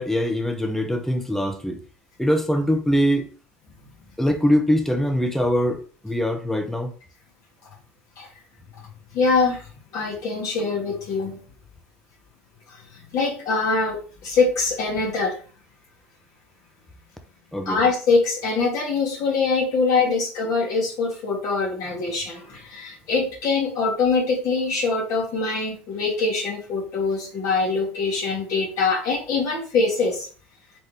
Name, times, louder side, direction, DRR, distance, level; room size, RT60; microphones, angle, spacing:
voice 1, 0.0-1.8 2.2-3.3 4.2-6.9 17.5-17.8, equal, 5° left, 0.9 m, -22 dB
voice 2, 9.1-11.4 12.7-15.4 17.7-30.3, left 4 dB, 50° left, 1.7 m, -23 dB
3.9 x 3.8 x 3.3 m
hypercardioid pair, 80°, 7 cm